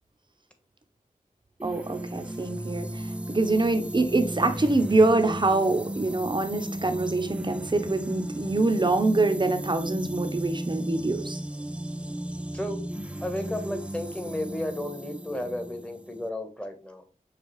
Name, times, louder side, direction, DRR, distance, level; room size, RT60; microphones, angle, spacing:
sound 1, 1.6-16.3, right 1 dB, 10° right, 0.4 m, -35 dB
voice 1, 1.6-11.4, right 2 dB, 35° right, 6 dB, 0.8 m, -25 dB
voice 2, 13.2-17.0, left 1 dB, 5° left, 5 dB, 1.1 m, -33 dB
6.5 x 2.4 x 3.1 m, 0.39 s
cardioid pair, 45°, 15 cm